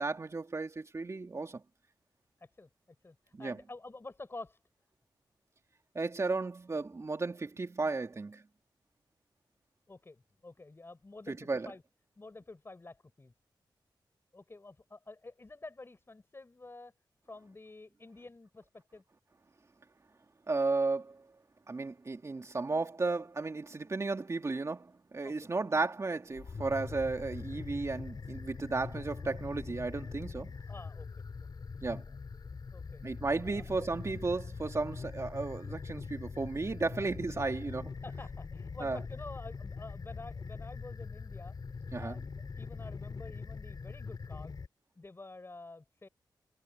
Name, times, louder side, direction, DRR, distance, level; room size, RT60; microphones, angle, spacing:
voice 1, 0.0-1.6 3.3-3.6 5.9-8.4 11.3-11.7 20.5-21.2 21.7-30.5 31.8-32.0 33.0-37.9 38.8-39.0 41.9-42.2, right 3 dB, 35° right, 2.8 m, -34 dB
voice 2, 2.4-4.6 9.9-11.8 12.2-13.3 14.3-16.9 17.2-19.0 25.2-25.5 30.7-31.2 32.7-33.0 33.5-33.9 38.0-41.5 42.0-42.2 42.6-44.6 45.0-46.1, left 2 dB, 30° left, 4.8 m, -49 dB
sound 1, 26.3-44.7, left 4 dB, 55° left, 4.5 m, -43 dB
wide cardioid pair, 90°, 8 cm